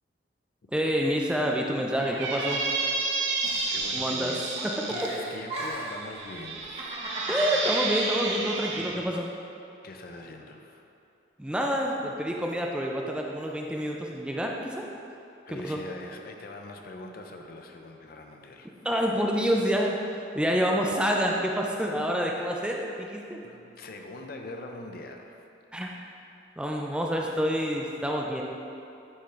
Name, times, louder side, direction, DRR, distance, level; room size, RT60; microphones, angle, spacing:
voice 1, 0.7-2.7 3.9-4.3 4.6-4.8 7.3-9.3 11.4-14.9 15.5-15.8 18.8-20.0 20.3-23.4 25.7-25.9 26.6-28.4, equal, 5° right, -1 dB, 0.4 m, -27 dB
Squeak, 2.0-5.1 5.9-9.0, right 3 dB, 85° right, 0.7 m, -31 dB
Giggle, 3.4-4.3 4.6-6.0 6.6-7.9, right 1 dB, 35° right, 1.0 m, -35 dB
voice 2, 3.7-4.5 4.9-6.9 9.8-10.9 15.5-18.8 23.4-25.5, left 2 dB, 55° left, 3 dB, 0.5 m, -42 dB
9.6 x 3.5 x 3.2 m, 2.6 s
head